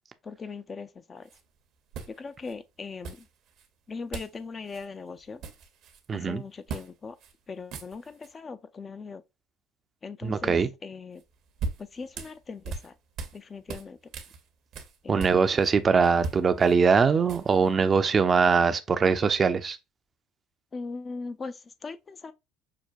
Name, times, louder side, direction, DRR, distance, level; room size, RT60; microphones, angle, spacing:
voice 1, 0.2-1.3 2.1-3.2 3.9-5.4 6.1-7.2 7.5-9.2 10.0-11.2 11.9-12.9 13.3-14.0 15.0-15.5 20.7-22.3, left 4 dB, 30° left, 0.4 m, -40 dB
sound 1, 1.2-1.4 1.9-2.5 3.0-3.7 4.1-4.4 4.7-4.9 5.2-6.1 6.7-6.9 7.2-7.3 7.6-8.3 11.2-13.4 13.7-15.7 16.0-17.7, right 4 dB, 60° right, 0.8 m, -39 dB
voice 2, 6.1-6.4 10.2-10.7 15.1-19.8, right 5 dB, 35° right, 0.5 m, -22 dB
5.8 x 2.2 x 2.5 m
hypercardioid pair, 75°, 0 cm